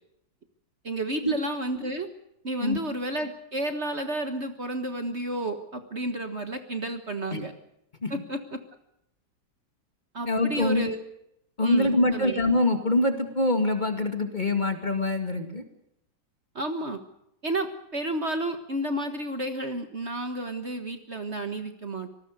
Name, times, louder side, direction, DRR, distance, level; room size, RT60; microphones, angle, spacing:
voice 1, 0.8-2.1 2.4-7.5 8.1-8.6 10.1-11.0 11.6-12.4 16.5-17.0 17.4-22.1, right 1 dB, 40° right, 7 dB, 1.7 m, -31 dB
voice 2, 10.3-10.8 11.6-15.6, left 2 dB, 25° left, 6 dB, 2.3 m, -24 dB
26.0 x 19.5 x 6.7 m, 0.78 s
omnidirectional pair, 1.9 m